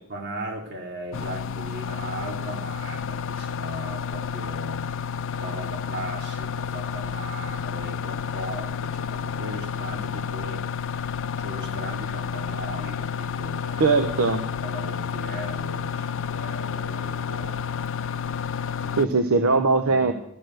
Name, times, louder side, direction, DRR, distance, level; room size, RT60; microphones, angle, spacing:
voice 1, 0.1-4.8 5.4-10.7 11.0-14.0 14.6-17.7 18.8-19.1 19.9-20.1, right 1 dB, 55° right, 1 dB, 2.9 m, -38 dB
sound 1, 1.1-19.1, left 7 dB, 65° left, 0.5 m, -30 dB
voice 2, 13.8-14.4 19.0-20.1, right 3 dB, 75° right, 7 dB, 0.8 m, -20 dB
12.5 x 6.8 x 7.8 m, 0.72 s
head